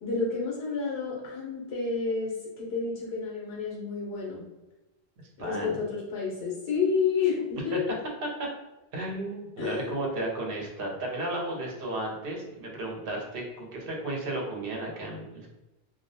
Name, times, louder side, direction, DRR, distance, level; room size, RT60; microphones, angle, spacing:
voice 1, 0.0-4.4 5.4-8.0 9.6-9.9, left 5 dB, 80° left, -4 dB, 0.9 m, -30 dB
voice 2, 5.4-5.8 8.9-15.5, right 1 dB, 65° right, 0 dB, 0.8 m, -34 dB
2.3 x 2.1 x 2.6 m, 1.0 s
omnidirectional pair, 1.1 m